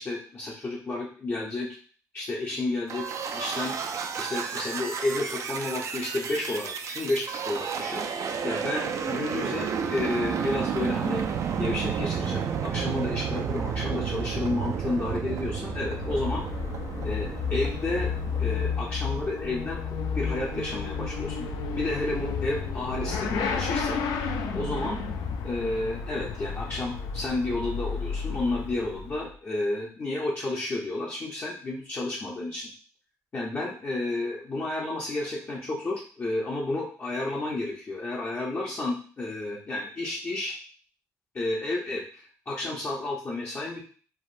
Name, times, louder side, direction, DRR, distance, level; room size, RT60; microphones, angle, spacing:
voice 1, 0.0-1.7 2.1-3.1 3.3-3.8 4.2-8.1 8.4-11.2 11.5-16.5 17.0-18.1 18.4-21.5 21.7-24.3 24.5-25.0 25.4-32.7 33.3-40.6 41.3-43.8, left 2 dB, 30° left, -4 dB, 0.6 m, -31 dB
sound 1, 2.9-19.5, right 6 dB, 50° right, 0.3 m, -32 dB
Motorcycle / Accelerating revving vroom, 15.5-29.3, left 5 dB, 75° left, 0.3 m, -32 dB
3.4 x 2.0 x 2.4 m, 0.42 s
cardioid pair, 85°, 7 cm